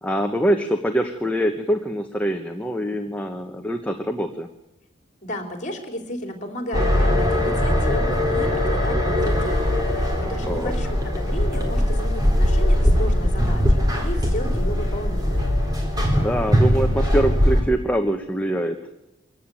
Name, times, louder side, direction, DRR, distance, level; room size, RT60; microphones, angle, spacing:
voice 1, 0.0-4.5 10.5-10.7 16.1-18.8, right 1 dB, 5° left, 4 dB, 1.1 m, -24 dB
voice 2, 5.2-9.6 9.9-15.5, equal, 40° left, 5 dB, 3.7 m, -33 dB
sound 1, 6.7-17.6, left 1 dB, 20° right, 3.8 m, -20 dB
24.5 x 14.5 x 9.1 m, 0.95 s
head